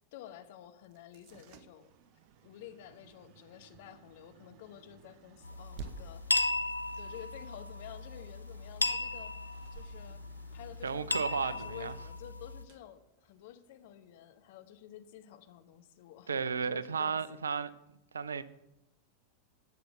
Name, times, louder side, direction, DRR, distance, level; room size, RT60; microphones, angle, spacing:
voice 1, 0.1-1.9 2.4-6.5 6.9-9.3 9.7-10.2 10.5-17.4, left 11 dB, 50° left, 1.1 m, -51 dB
sound 1, 0.8-13.8, right 6 dB, 45° right, 1.0 m, -55 dB
sound 2, 5.4-12.6, left 2 dB, 80° left, 0.7 m, -36 dB
voice 2, 10.8-11.9 16.3-17.7 18.1-18.4, right 6 dB, 70° right, 0.6 m, -33 dB
12.0 x 8.4 x 6.8 m
figure-of-eight pair, 90°, 0 cm